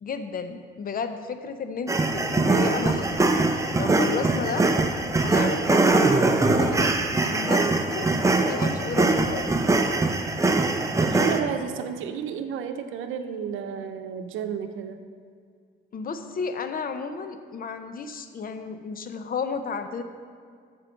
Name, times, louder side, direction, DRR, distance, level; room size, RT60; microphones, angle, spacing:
voice 1, 0.0-3.2 3.8-4.7 5.2-6.0 6.4-9.5 15.9-20.0, left 5 dB, 45° left, 9 dB, 0.8 m, -33 dB
sound 1, 1.9-11.4, right 2 dB, 15° right, 0.7 m, -22 dB
voice 2, 11.0-15.0, right 7 dB, 85° right, 8 dB, 0.7 m, -32 dB
7.5 x 6.9 x 6.4 m, 2.1 s
cardioid pair, 90°, 20 cm